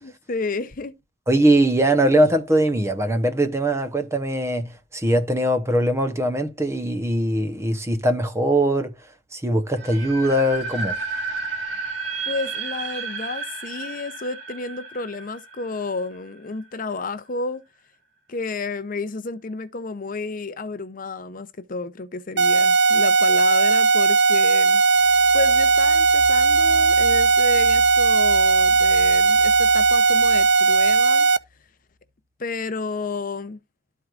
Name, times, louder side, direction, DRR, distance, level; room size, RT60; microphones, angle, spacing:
voice 1, 0.0-1.0 12.3-17.6 18.3-24.8 25.3-31.3 32.4-33.6, left 3 dB, 45° left, 0.7 m, -31 dB
voice 2, 1.3-9.0 9.3-11.0, right 1 dB, 15° right, 0.8 m, -21 dB
sound 1, 9.7-16.6, right 4 dB, 80° right, 3.1 m, -32 dB
sound 2, 22.4-31.4, right 4 dB, 65° right, 0.5 m, -17 dB
sound 3, 24.9-31.6, equal, ahead, 2.1 m, -41 dB
13.0 x 4.6 x 2.5 m
head